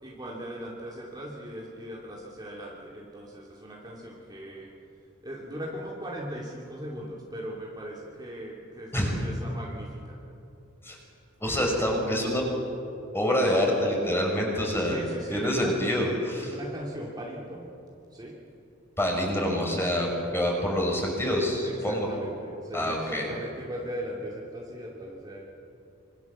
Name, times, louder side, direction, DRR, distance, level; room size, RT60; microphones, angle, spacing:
voice 1, 0.0-4.7 5.2-10.2 14.9-15.7 16.4-17.7 18.1-18.3 21.6-25.4, equal, 20° right, -4 dB, 2.6 m, -39 dB
voice 2, 11.4-12.4 13.1-15.0 15.3-16.5 19.0-22.1 22.7-23.3, equal, 10° left, 0 dB, 5.5 m, -26 dB
26.5 x 25.0 x 7.3 m, 2.8 s
head